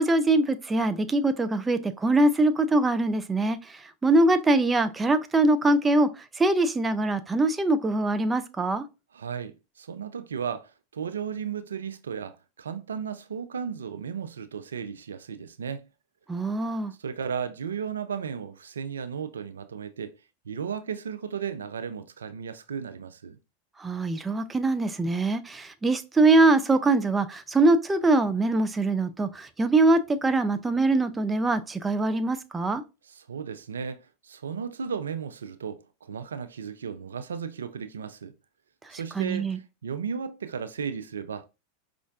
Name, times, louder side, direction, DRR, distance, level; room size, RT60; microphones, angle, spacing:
voice 1, 0.0-8.9 16.3-16.9 23.8-32.8 38.9-39.6, right 2 dB, 15° right, 0.4 m, -23 dB
voice 2, 9.1-15.8 17.0-20.1 20.5-23.4 33.2-38.3 38.9-41.5, right 7 dB, 85° right, 0.3 m, -35 dB
5.2 x 2.5 x 2.3 m
hypercardioid pair, 90°, 0 cm